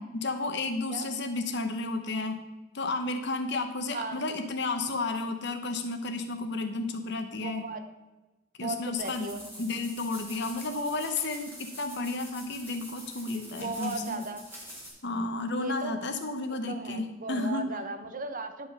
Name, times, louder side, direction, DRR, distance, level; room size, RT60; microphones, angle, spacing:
voice 1, 0.0-2.4 2.7-7.7 8.6-9.3 9.6-14.2 15.0-17.6, left 3 dB, 60° left, 7 dB, 1.0 m, -32 dB
voice 2, 7.3-7.8 8.6-9.4 13.5-14.4 15.6-16.0 16.5-18.7, right 3 dB, 45° right, 8 dB, 0.7 m, -37 dB
sound 1, 8.9-14.9, equal, 10° right, 3.4 m, -45 dB
11.0 x 5.4 x 5.5 m, 1.1 s
head